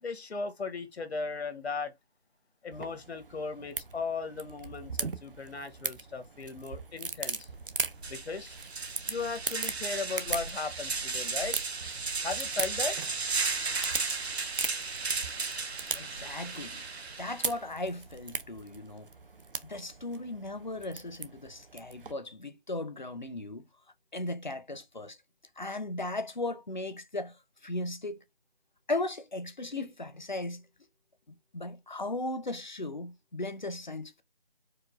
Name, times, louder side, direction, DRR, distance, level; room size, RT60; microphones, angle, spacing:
voice 1, 0.0-1.9 2.6-7.5 8.1-8.6 9.1-11.6 12.2-13.0, left 4 dB, 90° left, 0.8 m, -37 dB
sound 1, 2.7-22.1, right 4 dB, 60° right, 0.5 m, -40 dB
sound 2, 7.5-7.6 8.0-17.5, right 4 dB, 85° right, 0.8 m, -35 dB
voice 2, 15.9-16.8 17.2-19.1 19.7-23.6 24.1-25.2 25.6-27.3 27.6-28.2 28.9-30.6 31.5-34.2, left 2 dB, 50° left, 0.4 m, -37 dB
4.7 x 2.1 x 2.3 m
figure-of-eight pair, 175°, 31 cm